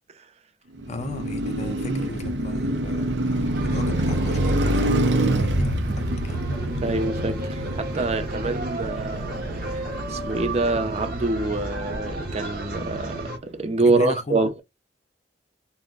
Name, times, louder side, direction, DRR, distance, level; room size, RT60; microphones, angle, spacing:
Car passing by, 0.7-13.0, right 1 dB, 85° right, 0.5 m, -27 dB
voice 1, 0.9-6.5 13.8-14.4, left 3 dB, 40° left, 0.5 m, -36 dB
sound 1, 3.5-13.4, right 2 dB, 55° right, 0.9 m, -33 dB
voice 2, 6.8-14.6, right 3 dB, 35° right, 0.5 m, -26 dB
2.6 x 2.1 x 3.6 m
head